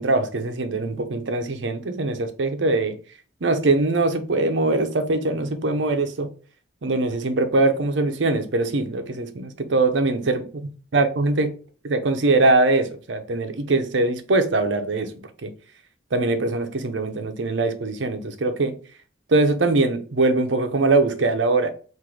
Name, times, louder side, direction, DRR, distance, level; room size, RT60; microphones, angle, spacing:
voice 1, 0.0-3.0 3.4-6.3 6.8-10.4 10.9-11.5 11.8-15.1 15.4-15.5 16.1-18.8 19.3-21.7, right 2 dB, 80° right, 0.7 m, -22 dB
4.6 x 2.6 x 3.8 m
head